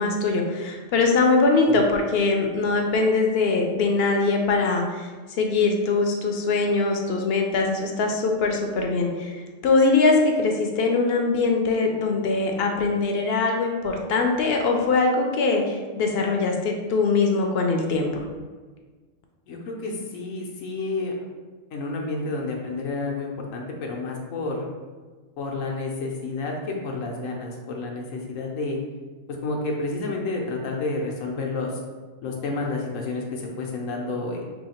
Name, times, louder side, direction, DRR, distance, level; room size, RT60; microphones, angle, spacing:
voice 1, 0.0-5.1 5.4-18.2, left 3 dB, 65° left, 2 dB, 0.7 m, -22 dB
voice 2, 19.5-21.2 21.7-24.6 25.4-28.8 29.3-31.8 32.2-34.4, left 3 dB, 90° left, 0 dB, 1.1 m, -30 dB
2.9 x 2.8 x 4.2 m, 1.4 s
omnidirectional pair, 1.3 m